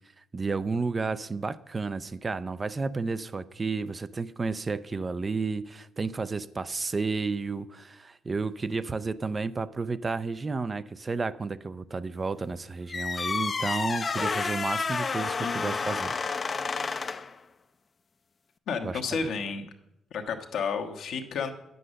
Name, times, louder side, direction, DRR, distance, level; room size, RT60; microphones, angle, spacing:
voice 1, 0.3-16.1 18.8-19.0, right 4 dB, 30° right, 14 dB, 0.4 m, -32 dB
sound 1, 12.9-17.4, left 4 dB, 35° left, 0.5 m, -30 dB
voice 2, 15.4-15.8 18.7-19.7 20.1-21.5, left 5 dB, 75° left, 4 dB, 1.2 m, -31 dB
9.5 x 7.8 x 6.4 m, 0.85 s
cardioid pair, 90°, 0 cm